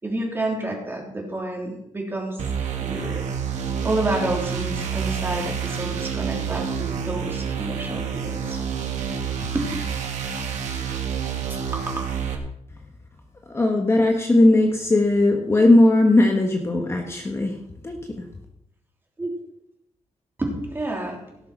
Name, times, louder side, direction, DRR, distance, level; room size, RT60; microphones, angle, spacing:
voice 1, 0.0-2.4 2.8-3.3 3.8-8.6 9.4-9.7 19.2-19.3 20.4-21.2, right 2 dB, 20° right, 0 dB, 3.3 m, -29 dB
sound 1, 2.4-12.3, right 7 dB, 85° right, 2.4 m, -28 dB
voice 2, 13.5-17.5 17.8-18.0, left 2 dB, 20° left, 2 dB, 1.3 m, -18 dB
17.0 x 6.8 x 6.0 m, 0.78 s
wide cardioid pair, 155°, 12 cm